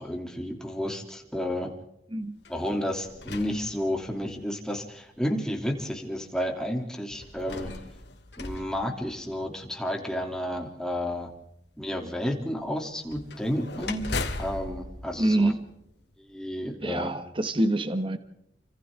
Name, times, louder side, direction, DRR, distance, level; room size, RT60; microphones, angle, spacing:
voice 1, 0.0-1.7 2.5-7.7 8.4-11.3 11.8-14.1 14.4-15.5 16.2-17.1, equal, 5° left, 2 dB, 3.0 m, -31 dB
voice 2, 2.1-2.4 15.2-15.6 16.8-18.2, right 1 dB, 30° right, 10 dB, 1.2 m, -26 dB
sound 1, 2.4-4.4 5.2-5.3 7.1-9.7 13.1-16.1, left 2 dB, 90° left, 2.3 m, -38 dB
30.0 x 26.0 x 3.7 m, 0.79 s
head